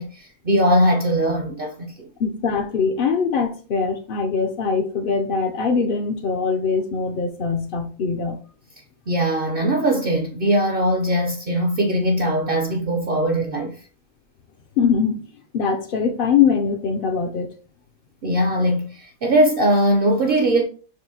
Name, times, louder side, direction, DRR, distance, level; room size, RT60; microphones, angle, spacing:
voice 1, 0.0-2.1 9.1-13.8 18.2-20.6, right 1 dB, 60° right, 0.7 m, -20 dB
voice 2, 2.2-8.4 14.8-15.3 15.5-17.5, left 6 dB, 65° left, 0.5 m, -22 dB
6.1 x 2.5 x 2.7 m
omnidirectional pair, 1.4 m